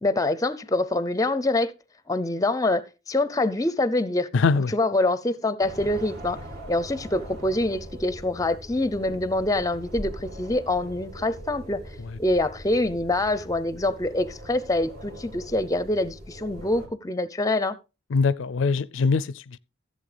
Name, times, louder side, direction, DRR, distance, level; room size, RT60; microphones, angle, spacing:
voice 1, 0.0-1.7 2.1-4.3 4.6-6.4 6.7-11.8 12.2-17.8, left 2 dB, 20° left, 0.5 m, -25 dB
voice 2, 4.3-4.7 18.1-19.6, left 4 dB, 75° left, 0.4 m, -22 dB
sound 1, 5.6-16.9, equal, 55° right, 2.6 m, -41 dB
15.0 x 7.6 x 3.3 m
head